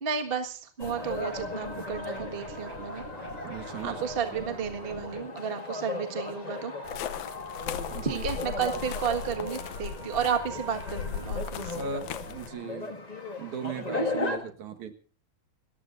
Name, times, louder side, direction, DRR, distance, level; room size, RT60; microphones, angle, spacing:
voice 1, 0.0-3.0 3.8-6.7 8.0-11.9, right 7 dB, 35° right, 5 dB, 0.9 m, -32 dB
sound 1, 0.8-14.4, left 2 dB, 30° left, 0.7 m, -37 dB
sound 2, 0.8-5.2, equal, 50° right, 8.9 m, -44 dB
voice 2, 3.4-4.1 7.9-8.2 8.6-8.7 11.7-13.0 13.4-14.9, right 5 dB, 70° right, 7 dB, 2.8 m, -38 dB
sound 3, 6.9-12.5, left 8 dB, 75° left, 2.2 m, -38 dB
29.5 x 14.5 x 2.6 m, 0.39 s
omnidirectional pair, 3.7 m